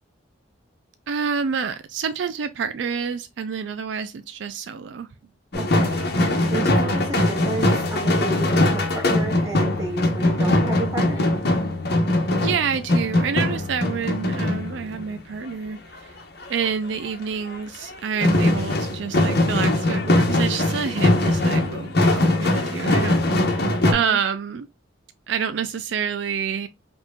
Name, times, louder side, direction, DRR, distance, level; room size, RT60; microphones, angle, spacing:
voice 1, 1.1-5.1 12.4-16.1 16.5-23.2 23.5-23.6 23.9-24.7 25.3-26.7, right 6 dB, 70° right, 0.4 m, -28 dB
sound 1, 5.5-15.1 16.4-16.7 17.1-17.2 17.5-17.9 18.2-23.9, left 1 dB, 60° left, 1.0 m, -21 dB
voice 2, 5.6-6.0 6.5-11.2 24.0-24.2, right 2 dB, 15° right, 1.7 m, -32 dB
5.2 x 3.0 x 2.3 m
head